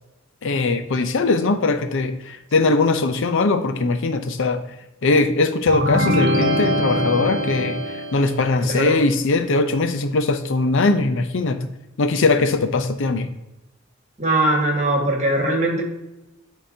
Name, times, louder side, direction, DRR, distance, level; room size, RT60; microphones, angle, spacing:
voice 1, 0.4-4.6 5.0-11.6 12.0-13.3, left 3 dB, 65° left, 8 dB, 0.6 m, -20 dB
sound 1, 5.7-8.5, equal, 70° right, 0.9 m, -22 dB
voice 2, 8.6-8.9 14.2-15.8, right 1 dB, 35° right, 0 dB, 1.7 m, -20 dB
11.0 x 3.8 x 2.8 m, 0.98 s
head